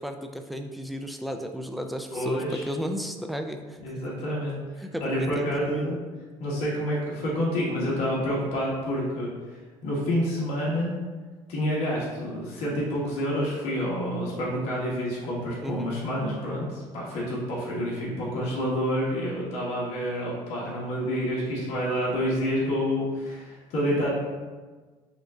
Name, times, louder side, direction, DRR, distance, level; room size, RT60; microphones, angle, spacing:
voice 1, 0.0-3.8 4.8-6.0 15.6-16.0, equal, ahead, 4 dB, 0.4 m, -33 dB
voice 2, 2.1-2.7 3.8-4.5 5.0-6.0 6.4-9.3 9.8-10.9 11.5-24.1, equal, 70° left, -5 dB, 1.2 m, -28 dB
5.2 x 2.5 x 3.7 m, 1.4 s
supercardioid pair, 95°, 11 cm